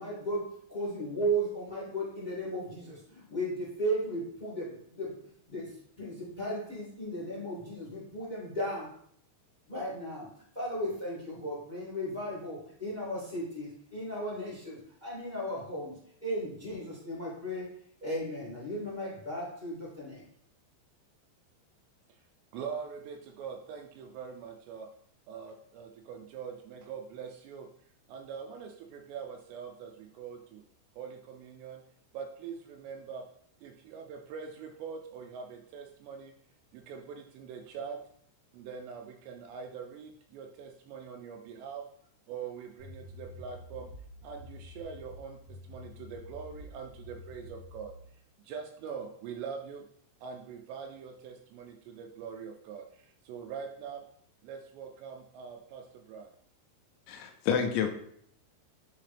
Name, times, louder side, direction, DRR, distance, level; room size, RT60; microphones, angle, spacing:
voice 1, 0.0-8.9 9.7-10.3 10.5-17.7 18.0-20.2, right 1 dB, 30° left, -7 dB, 0.8 m, -35 dB
voice 2, 22.5-24.9 25.3-27.7 28.1-30.6 31.0-31.8 32.1-33.3 33.6-36.3 36.7-38.0 38.5-41.9 42.3-43.9 44.2-48.0 48.4-49.9 50.2-54.0 54.4-56.3, right 6 dB, 85° right, 3 dB, 2.5 m, -43 dB
sound 1, 42.8-48.0, left 2 dB, 60° left, 3.2 m, -48 dB
voice 3, 57.1-57.9, left 7 dB, 85° left, 5 dB, 2.9 m, -29 dB
9.9 x 3.6 x 3.4 m, 0.67 s
omnidirectional pair, 5.4 m